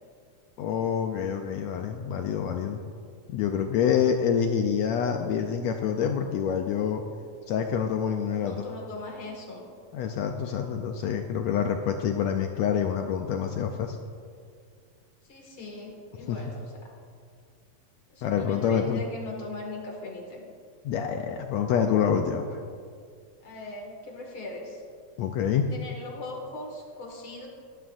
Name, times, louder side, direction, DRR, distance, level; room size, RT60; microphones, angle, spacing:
voice 1, 0.6-2.8 3.3-7.0 7.5-8.7 9.9-14.0 16.3-16.4 18.2-19.0 20.8-22.6 25.2-25.7, left 8 dB, 75° left, 4 dB, 1.7 m, -27 dB
voice 2, 8.3-9.6 15.3-16.9 18.1-20.4 23.4-24.8 25.7-27.5, left 2 dB, 45° left, -1 dB, 2.5 m, -39 dB
18.0 x 11.5 x 2.6 m, 2.2 s
omnidirectional pair, 3.6 m